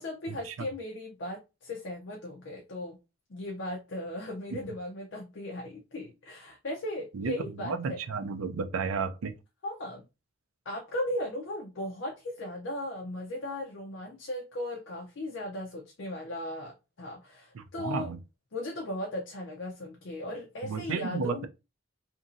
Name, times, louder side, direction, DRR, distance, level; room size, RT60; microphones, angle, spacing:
voice 1, 0.0-3.0 3.3-8.0 9.6-10.1 10.7-18.2 18.5-21.5, left 1 dB, 60° left, 0.5 m, -37 dB
voice 2, 7.6-9.3 17.5-18.2 20.6-21.4, right 5 dB, 90° right, 0.5 m, -32 dB
2.9 x 2.6 x 2.5 m
head